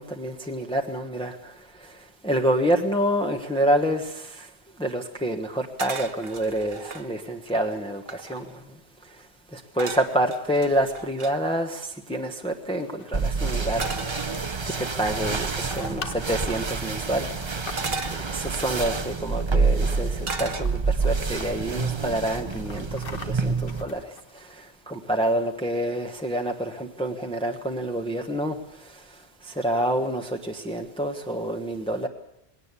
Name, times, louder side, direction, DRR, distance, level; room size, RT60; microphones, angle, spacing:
voice 1, 0.0-1.5 1.8-2.0 2.2-4.5 4.8-8.5 9.5-14.2 14.8-17.3 18.1-24.1 24.4-28.6 28.8-29.0 29.4-32.1, right 1 dB, 5° left, 1.1 m, -27 dB
sound 1, 5.8-7.1 7.7-7.8 8.0-8.6 9.8-11.3 13.8-14.9 15.8-16.0 17.8-19.0 20.2-21.1 21.5-21.9, right 3 dB, 65° right, 1.5 m, -35 dB
sound 2, 12.6-18.3 19.3-19.8 20.1-20.2 20.4-21.5 21.9-24.6, left 5 dB, 60° left, 1.4 m, -44 dB
sound 3, 13.1-23.8, right 4 dB, 30° right, 0.8 m, -28 dB
20.5 x 17.5 x 8.3 m
omnidirectional pair, 1.1 m